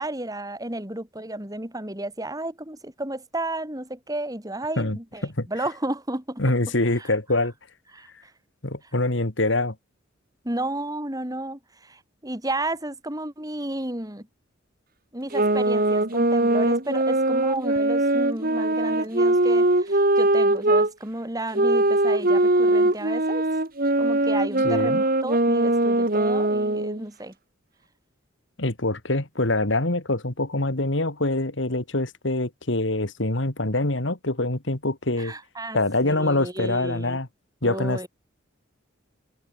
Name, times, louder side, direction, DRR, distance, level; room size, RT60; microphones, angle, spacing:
voice 1, 0.0-6.4 7.0-7.1 7.9-8.1 10.4-14.3 15.1-23.4 24.0-27.3 35.2-35.8 36.0-37.2 37.6-38.1, right 1 dB, 20° right, 3.2 m, -32 dB
voice 2, 4.8-5.5 6.4-7.5 8.6-9.8 24.6-25.0 28.6-35.3 35.7-37.3 37.6-38.1, left 2 dB, 65° left, 2.3 m, -25 dB
sound 1, 15.3-20.9 21.5-27.0, right 2 dB, 45° right, 2.3 m, -21 dB
open air
head